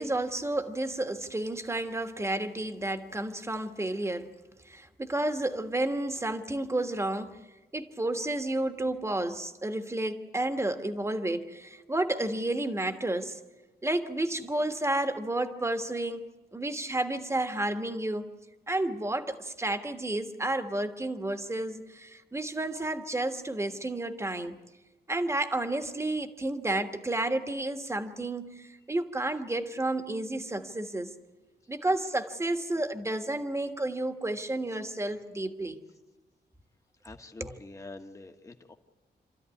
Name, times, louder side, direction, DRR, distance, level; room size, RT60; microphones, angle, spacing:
voice 1, 0.0-4.3 4.6-7.4 7.7-13.4 13.8-16.3 16.5-18.3 18.7-24.6 25.1-31.1 31.7-35.8 37.4-37.5, right 1 dB, 15° right, 7 dB, 1.4 m, -31 dB
voice 2, 37.0-38.7, left 2 dB, 20° left, 4 dB, 1.3 m, -46 dB
27.5 x 13.0 x 9.6 m, 1.2 s
wide cardioid pair, 115°, 18 cm